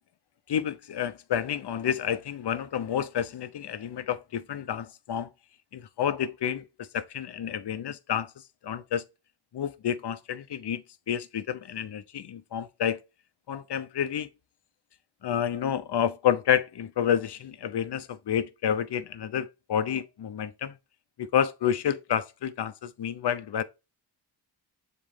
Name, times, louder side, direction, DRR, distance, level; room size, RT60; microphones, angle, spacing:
voice 1, 0.5-5.3 5.7-6.7 6.9-8.3 8.6-9.0 9.5-13.0 13.5-14.3 15.2-20.7 21.2-23.6, left 9 dB, 65° left, 0.7 m, -29 dB
7.5 x 4.1 x 3.3 m
wide cardioid pair, 115°, 44 cm